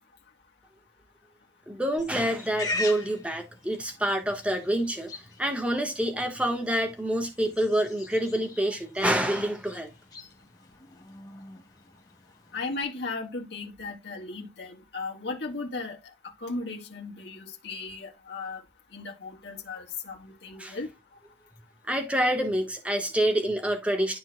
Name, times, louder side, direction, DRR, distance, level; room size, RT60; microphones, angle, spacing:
voice 1, 1.7-5.1 5.4-9.9 20.6-20.8 21.9-24.2, right 1 dB, 5° right, 1.4 m, -27 dB
Livestock farm animals working animals, 2.0-12.8, left 2 dB, 20° left, 1.4 m, -42 dB
voice 2, 12.5-16.0 16.4-18.6 18.9-20.9, left 3 dB, 70° left, 1.9 m, -36 dB
12.5 x 4.4 x 2.3 m
head